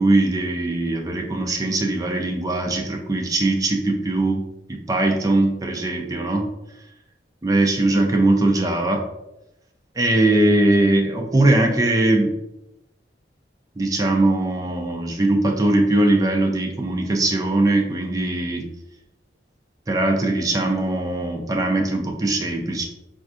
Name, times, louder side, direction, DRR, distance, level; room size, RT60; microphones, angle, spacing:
voice 1, 0.0-4.4 4.7-6.5 7.4-9.0 10.0-12.3 13.8-18.6 19.9-22.8, right 2 dB, 20° right, 2 dB, 0.4 m, -20 dB
4.3 x 2.4 x 2.4 m, 0.93 s
head